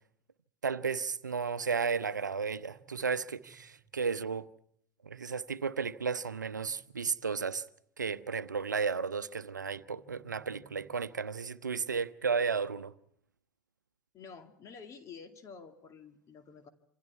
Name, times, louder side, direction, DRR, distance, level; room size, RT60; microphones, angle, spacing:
voice 1, 0.6-4.5 5.0-7.6 8.0-12.9, right 5 dB, 80° right, 0.8 m, -33 dB
sound 1, 2.1-4.1 5.8-7.9 9.5-11.5, right 6 dB, 25° right, 2.8 m, -64 dB
voice 2, 14.1-16.7, left 5 dB, 35° left, 2.2 m, -50 dB
28.0 x 26.0 x 4.7 m
figure-of-eight pair, 85°, 10 cm